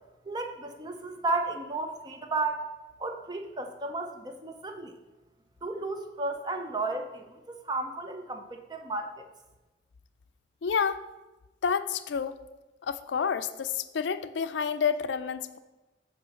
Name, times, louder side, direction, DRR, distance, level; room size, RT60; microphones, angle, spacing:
voice 1, 0.2-2.6 3.0-5.0 5.6-9.3, right 2 dB, 20° right, 5 dB, 0.6 m, -33 dB
voice 2, 10.6-11.0 11.6-12.3 12.8-15.6, left 6 dB, 75° left, 11 dB, 0.4 m, -29 dB
7.9 x 3.1 x 6.3 m, 1.1 s
head